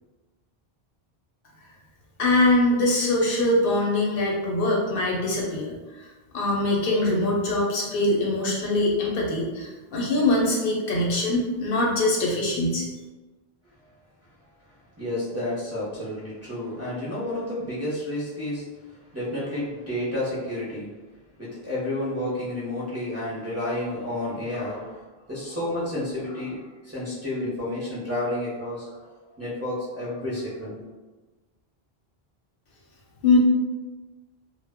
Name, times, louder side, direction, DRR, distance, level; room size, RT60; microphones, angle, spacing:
voice 1, 2.2-5.7 6.3-12.8 33.2-33.4, left 2 dB, 70° left, -2 dB, 0.7 m, -23 dB
voice 2, 15.0-18.6 19.1-20.9 21.4-25.0 25.3-30.8, left 1 dB, 20° right, -9 dB, 0.6 m, -30 dB
2.1 x 2.1 x 3.3 m, 1.2 s
omnidirectional pair, 1.0 m